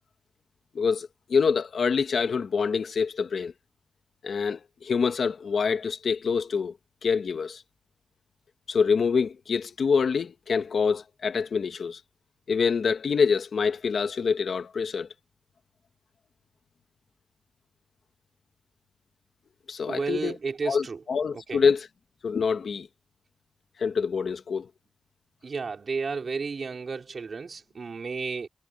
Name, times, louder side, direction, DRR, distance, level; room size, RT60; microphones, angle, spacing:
voice 1, 0.7-3.5 4.2-6.7 7.0-7.6 8.7-12.0 12.5-15.1 19.7-20.4 20.6-21.9 22.2-22.9 23.8-24.7, left 5 dB, 80° left, 1.5 m, -26 dB
voice 2, 19.9-21.0 21.5-21.6 25.4-28.5, right 4 dB, 55° right, 4.4 m, -32 dB
wide cardioid pair, 165°, 0 cm